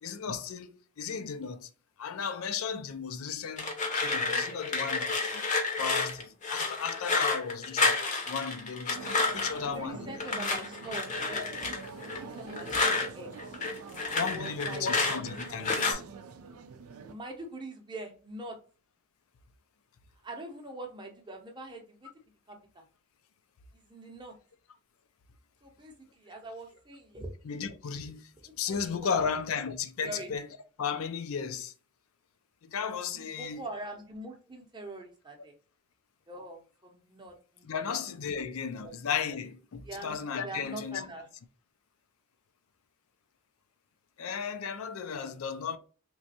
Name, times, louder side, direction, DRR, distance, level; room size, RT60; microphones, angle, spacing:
voice 1, 0.0-1.7 2.0-5.4 5.8-8.0 8.3-10.1 12.8-12.9 14.1-16.0 27.5-28.3 28.6-30.5 30.8-31.7 32.6-33.6 37.6-41.1 44.2-45.8, left 6 dB, 75° left, 0.4 m, -35 dB
sound 1, 3.6-9.7 10.2-13.1 13.4-15.9, left 3 dB, 35° left, 0.7 m, -30 dB
sound 2, 8.9-17.1, right 5 dB, 80° right, 0.4 m, -45 dB
voice 2, 9.7-11.7 12.0-13.3 14.3-14.9 17.1-18.6 20.2-22.1 22.5-22.8 23.9-24.3 25.6-27.3 28.4-29.3 30.0-30.3 33.1-35.5 36.3-38.0 38.8-38.9 39.9-40.2 40.4-41.3, right 2 dB, 20° right, 0.6 m, -43 dB
3.3 x 3.0 x 2.7 m
head